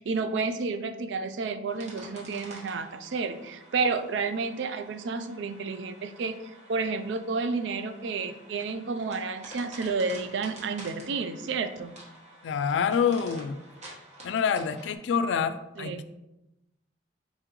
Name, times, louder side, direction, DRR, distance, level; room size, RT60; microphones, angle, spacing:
voice 1, 0.0-6.4 6.7-11.9 15.8-16.0, right 4 dB, 80° right, 9 dB, 0.4 m, -31 dB
sound 1, 1.7-15.0, right 1 dB, 40° right, 1.1 m, -49 dB
voice 2, 12.4-13.6 14.2-16.0, left 6 dB, 85° left, 11 dB, 0.3 m, -27 dB
4.3 x 3.7 x 3.0 m, 0.94 s
head